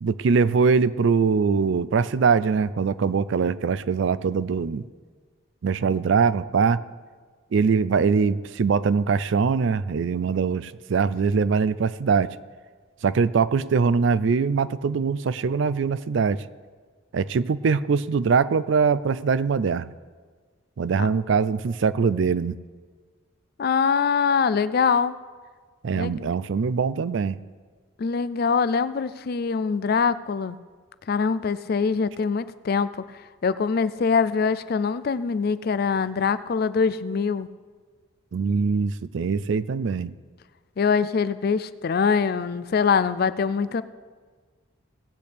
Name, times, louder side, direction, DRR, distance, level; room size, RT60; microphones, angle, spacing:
voice 1, 0.0-4.8 5.6-6.8 7.5-12.3 13.0-16.4 17.1-19.9 20.8-22.6 25.8-27.4 38.3-40.1, right 5 dB, 65° right, 16 dB, 0.4 m, -22 dB
voice 2, 23.6-25.1 25.9-26.3 28.0-30.6 31.1-32.9 33.4-37.5 40.8-43.8, left 5 dB, 50° left, 15 dB, 0.4 m, -23 dB
18.0 x 8.4 x 3.4 m, 1.5 s
head